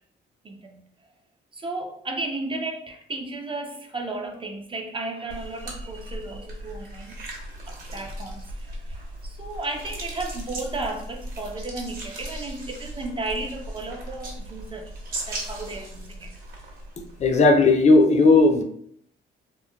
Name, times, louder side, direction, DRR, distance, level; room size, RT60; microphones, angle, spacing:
voice 1, 0.4-0.8 1.5-7.2 7.7-14.9 15.3-16.3, right 2 dB, 25° right, 2 dB, 0.4 m, -34 dB
sound 1, 5.3-17.5, right 1 dB, 50° right, 0.8 m, -37 dB
voice 2, 17.2-18.6, left 3 dB, 35° left, 4 dB, 0.4 m, -16 dB
2.9 x 2.1 x 2.2 m, 0.67 s
cardioid pair, 90°, 20 cm